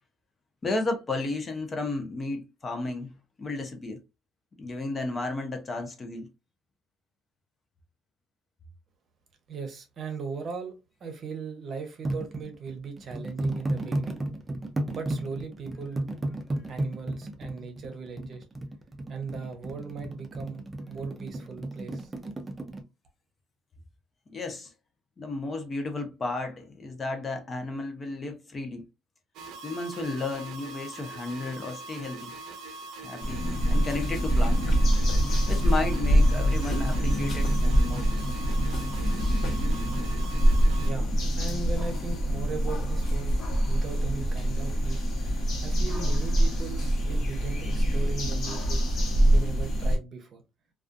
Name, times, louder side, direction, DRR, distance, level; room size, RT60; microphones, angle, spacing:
voice 1, 0.6-3.1 3.4-4.0 4.6-6.3 24.3-24.7 25.2-28.9 29.6-32.3 33.0-34.7 35.5-38.1, left 3 dB, 30° left, 0.6 m, -33 dB
voice 2, 9.5-10.7 11.0-14.2 14.9-16.1 16.7-18.5 19.1-22.1 40.8-45.0 45.6-49.0 49.3-50.4, right 5 dB, 45° right, 0.8 m, -38 dB
sound 1, 12.0-22.8, right 1 dB, 20° right, 0.5 m, -33 dB
sound 2, 29.3-40.9, right 3 dB, 80° right, 0.5 m, -42 dB
sound 3, 33.2-50.0, equal, 55° left, 0.9 m, -25 dB
2.4 x 2.3 x 2.4 m
cardioid pair, 120°, 0 cm